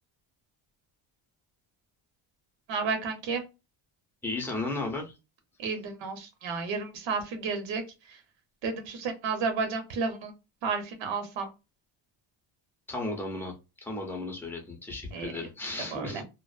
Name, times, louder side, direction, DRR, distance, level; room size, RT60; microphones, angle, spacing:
voice 1, 2.7-3.4 5.6-7.8 8.6-10.3 10.6-11.5 15.1-15.3 15.9-16.2, right 4 dB, 90° right, 6 dB, 0.9 m, -32 dB
voice 2, 4.2-5.1 12.9-13.6 13.8-16.2, left 2 dB, 5° left, 2 dB, 0.5 m, -34 dB
2.5 x 2.1 x 2.4 m, 0.26 s
cardioid pair, 160°, 44 cm